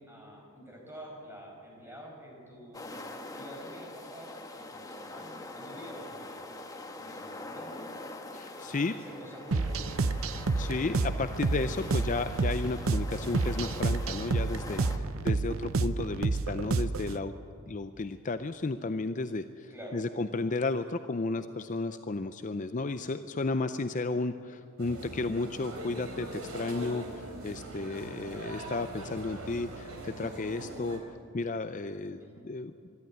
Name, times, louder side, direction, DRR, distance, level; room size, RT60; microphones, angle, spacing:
voice 1, 0.0-3.0 3.3-6.4 7.0-7.9 8.6-9.9 14.9-15.2 19.7-20.0 23.8-24.1 28.2-28.5 32.2-32.4, equal, 10° right, -1 dB, 5.0 m, -48 dB
sound 1, 2.7-15.0, left 2 dB, 15° left, 1.2 m, -44 dB
voice 2, 8.3-8.9 10.6-17.3 17.7-31.0 31.3-32.7, left 3 dB, 35° left, 10 dB, 0.5 m, -33 dB
sound 2, 9.5-17.2, right 3 dB, 70° right, 0.7 m, -30 dB
sound 3, 24.8-31.0, right 1 dB, 85° right, 4.1 m, -41 dB
24.5 x 12.0 x 9.8 m, 2.4 s
head